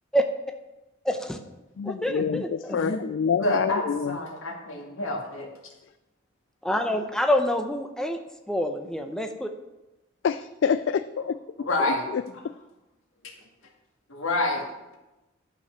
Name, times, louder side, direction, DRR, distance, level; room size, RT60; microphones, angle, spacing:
voice 1, 1.0-1.4 1.8-2.8 6.6-8.2 8.5-9.5, equal, 5° left, 5 dB, 0.7 m, -26 dB
voice 2, 1.8-4.2 10.2-11.4 11.8-12.2, left 6 dB, 60° left, 11 dB, 0.3 m, -27 dB
voice 3, 2.7-3.0 3.4-5.5 11.7-12.1 14.1-14.6, left 2 dB, 90° left, 1 dB, 2.1 m, -28 dB
11.5 x 5.7 x 5.9 m, 1.0 s
head